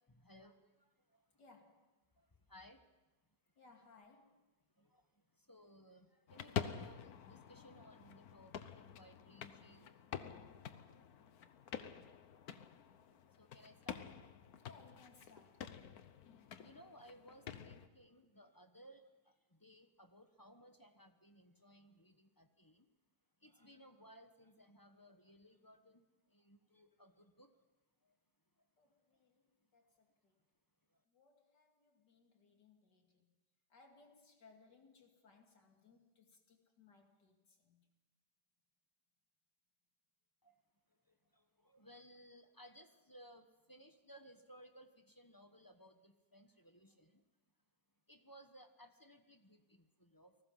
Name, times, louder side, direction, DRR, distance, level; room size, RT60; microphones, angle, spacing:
voice 1, 0.1-0.6 1.1-1.2 2.5-2.8 4.8-5.0 5.5-10.0 13.4-14.1 16.6-19.1 19.5-22.8 23.4-26.1 26.3-27.5 40.4-40.5 41.3-47.2 48.1-50.3, equal, 15° left, 7 dB, 1.0 m, -61 dB
voice 2, 1.4-2.0 3.6-4.5 14.6-15.7 28.8-30.4 31.1-33.3 33.7-37.9, left 4 dB, 85° left, 3 dB, 3.1 m, -66 dB
sound 1, 6.3-17.9, left 8 dB, 65° left, 1.4 m, -48 dB
30.0 x 19.5 x 5.7 m, 1.1 s
omnidirectional pair, 1.8 m